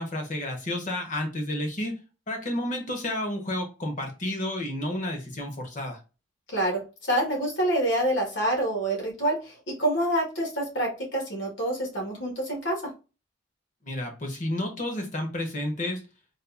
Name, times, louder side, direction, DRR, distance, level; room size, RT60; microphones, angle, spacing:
voice 1, 0.0-2.0 2.3-6.0 13.8-16.0, left 1 dB, 45° left, 4 dB, 1.0 m, -31 dB
voice 2, 6.5-12.9, right 1 dB, 75° left, 0 dB, 1.7 m, -27 dB
4.1 x 2.5 x 2.4 m, 0.31 s
head